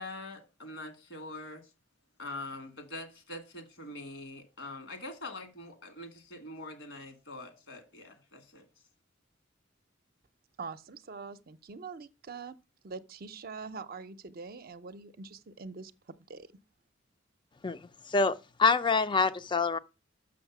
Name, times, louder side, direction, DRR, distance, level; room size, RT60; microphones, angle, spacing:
voice 1, 0.0-1.6 2.2-8.6, left 2 dB, 70° left, 2.1 m, -44 dB
voice 2, 10.6-12.6 12.8-16.5, right 4 dB, 50° right, 0.6 m, -44 dB
voice 3, 18.1-19.8, left 4 dB, 25° left, 0.5 m, -26 dB
6.4 x 6.3 x 5.9 m
head